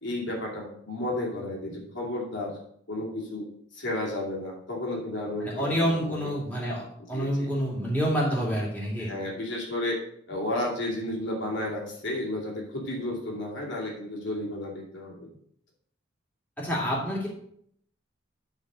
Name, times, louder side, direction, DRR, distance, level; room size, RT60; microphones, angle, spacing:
voice 1, 0.0-2.6 2.9-3.5 3.7-6.3 7.1-7.5 9.0-10.0 10.3-15.3, left 1 dB, 70° left, -2 dB, 2.5 m, -32 dB
voice 2, 5.4-9.1 16.6-17.3, equal, 10° left, -5 dB, 2.5 m, -28 dB
10.5 x 3.9 x 6.2 m, 0.68 s
head